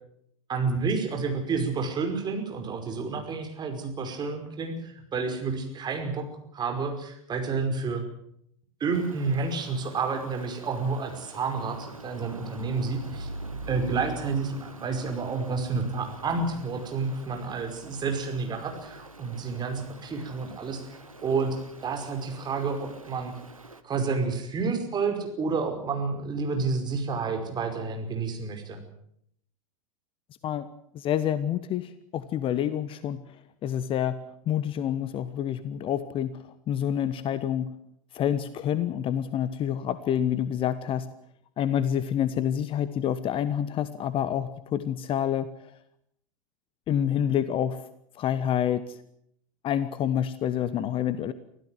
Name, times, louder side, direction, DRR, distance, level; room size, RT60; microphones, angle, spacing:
voice 1, 0.5-6.3 6.5-8.0 8.8-13.3 13.7-23.3 23.8-28.8, right 4 dB, 25° right, 5 dB, 5.2 m, -30 dB
Stream, 8.9-23.8, right 2 dB, 90° right, 1.5 m, -45 dB
voice 2, 30.9-33.2 33.6-34.2 34.5-36.4 36.7-37.7 38.1-41.1 41.6-45.5 46.9-47.8 48.2-49.0 49.6-51.3, left 10 dB, 30° left, 14 dB, 1.2 m, -27 dB
25.0 x 16.0 x 7.8 m, 0.70 s
figure-of-eight pair, 90°, 17 cm